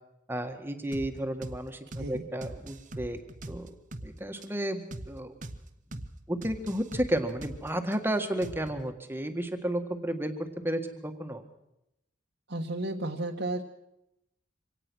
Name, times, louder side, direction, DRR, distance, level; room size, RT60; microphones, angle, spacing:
voice 1, 0.3-3.2 3.5-3.7 4.0-5.4 5.9-6.0 6.3-11.4, right 1 dB, 10° right, 6 dB, 1.8 m, -32 dB
sound 1, 0.9-1.1 1.4-1.6 1.9-2.1 2.4-4.1 4.4-4.5 4.9-5.1 5.4-5.6 5.9-6.1 6.4-8.0 8.4-8.8, right 1 dB, 40° right, 1.4 m, -41 dB
voice 2, 12.5-13.6, right 2 dB, 65° right, -1 dB, 1.6 m, -33 dB
25.0 x 18.0 x 6.4 m, 0.84 s
head